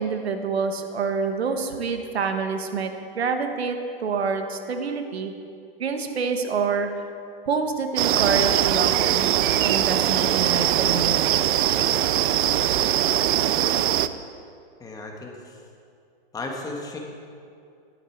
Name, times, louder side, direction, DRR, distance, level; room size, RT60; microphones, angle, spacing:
voice 1, 0.0-2.9 3.1-5.3 5.8-6.9 7.5-11.3, right 5 dB, 85° right, 6 dB, 1.4 m, -27 dB
sound 1, 8.0-14.1, right 12 dB, 55° right, 0.5 m, -21 dB
voice 2, 14.8-15.3 16.3-17.0, left 2 dB, 10° left, 1 dB, 1.6 m, -34 dB
12.5 x 11.5 x 4.6 m, 2.4 s
hypercardioid pair, 135°, 31 cm